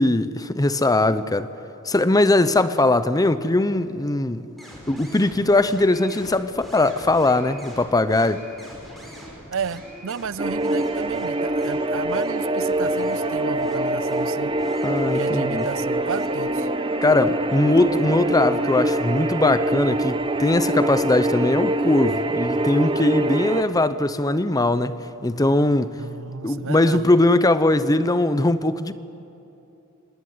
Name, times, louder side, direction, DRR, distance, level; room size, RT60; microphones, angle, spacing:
voice 1, 0.0-1.5 1.8-4.5 4.9-8.4 14.8-15.7 17.0-26.0 26.4-28.9, left 2 dB, 15° left, 0.7 m, -20 dB
sound 1, 4.6-21.5, equal, ahead, 5.2 m, -45 dB
voice 2, 9.5-14.5 15.1-16.7 26.0-27.1, right 5 dB, 65° right, 0.6 m, -33 dB
sound 2, 10.4-23.6, right 1 dB, 25° right, 1.0 m, -24 dB
25.0 x 19.5 x 9.6 m
head